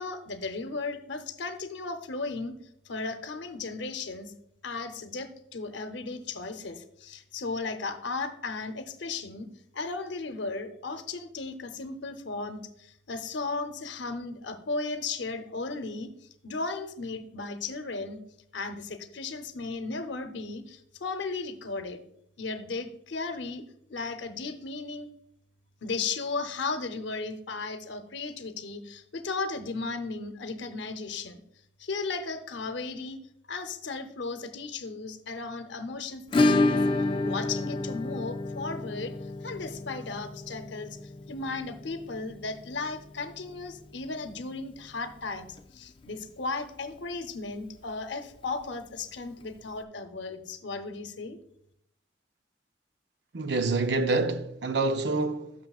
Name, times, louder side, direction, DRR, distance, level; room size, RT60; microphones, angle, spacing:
voice 1, 0.0-2.6 2.9-4.3 4.6-16.1 16.4-18.2 18.5-22.0 22.4-23.6 23.9-25.1 25.8-31.4 31.8-33.2 33.5-36.8 37.2-39.1 39.4-41.0 41.3-51.4, left 3 dB, 75° left, 0.7 m, -35 dB
Acoustic guitar / Strum, 36.3-44.9 45.2-45.3 45.6-45.7 46.0-46.1 48.2-48.3 49.4-49.5, left 2 dB, 25° left, 0.3 m, -30 dB
voice 2, 53.3-55.5, right 3 dB, 65° right, 0.6 m, -27 dB
11.5 x 6.2 x 2.4 m
head